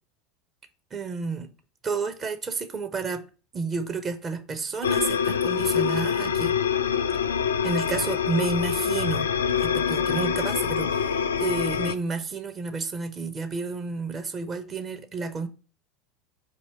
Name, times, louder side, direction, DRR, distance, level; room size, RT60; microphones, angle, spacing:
voice 1, 0.9-1.5 1.8-3.2 3.5-6.6 7.6-15.5, right 4 dB, 30° right, 0.6 m, -31 dB
sound 1, 4.8-11.9, left 7 dB, 75° left, 0.3 m, -25 dB
4.2 x 2.8 x 4.5 m
figure-of-eight pair, 75°, 0 cm